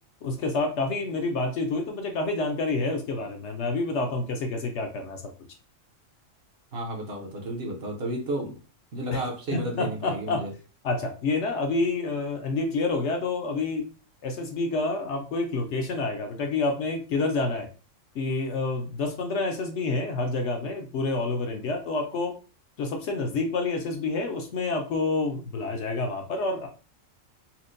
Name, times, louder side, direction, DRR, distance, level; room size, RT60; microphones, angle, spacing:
voice 1, 0.2-5.2 9.1-10.5 10.8-13.9 14.2-17.7 18.1-22.4 22.8-26.7, left 3 dB, 65° left, 3 dB, 0.9 m, -28 dB
voice 2, 6.7-8.6 8.9-10.5, right 1 dB, 55° right, 0 dB, 0.9 m, -32 dB
4.3 x 2.1 x 2.5 m, 0.35 s
omnidirectional pair, 1.4 m